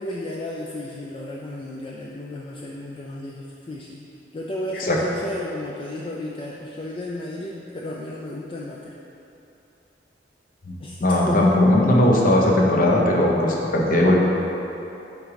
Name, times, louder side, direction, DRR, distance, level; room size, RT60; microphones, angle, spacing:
voice 1, 0.0-4.0 4.3-8.9 10.8-11.4, left 1 dB, 30° left, -3 dB, 0.4 m, -33 dB
voice 2, 11.0-14.1, left 1 dB, 55° left, -2 dB, 0.9 m, -18 dB
7.8 x 3.7 x 5.1 m, 2.9 s
head